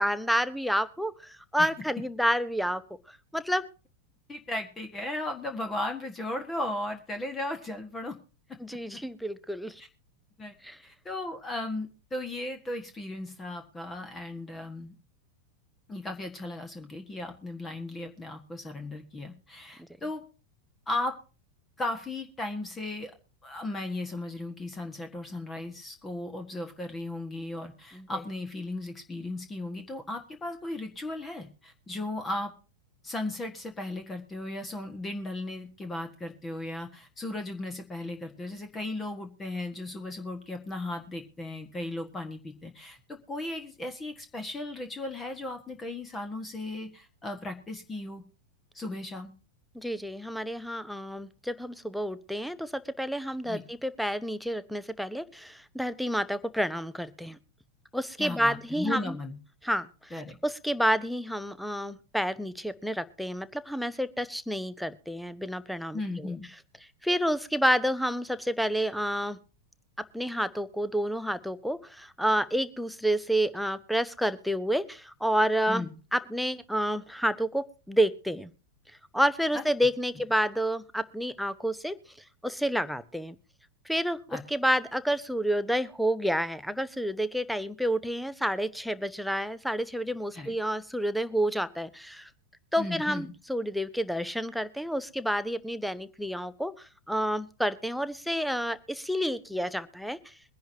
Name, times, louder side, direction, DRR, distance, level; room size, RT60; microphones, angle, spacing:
voice 1, 0.0-2.8 3.1-3.7 8.6-9.8 10.6-10.8 19.8-19.9 27.9-28.2 49.7-57.4 57.9-59.2 59.6-66.3 67.0-69.4 70.1-75.8 76.1-78.5 79.1-82.0 82.4-83.3 83.9-92.3 92.7-100.3, equal, ahead, 15 dB, 0.8 m, -29 dB
voice 2, 4.3-8.2 8.5-8.8 10.4-10.5 10.8-14.9 15.9-20.2 20.9-21.2 21.8-23.1 23.4-32.5 33.0-48.2 48.7-49.3 53.4-53.7 58.2-59.4 60.1-60.4 65.9-66.4 75.7-76.0 79.5-79.6 84.3-84.4 90.3-90.5 92.8-93.3, left 2 dB, 15° left, 6 dB, 1.5 m, -36 dB
22.5 x 10.5 x 2.8 m, 0.35 s
figure-of-eight pair, 90°, 0 cm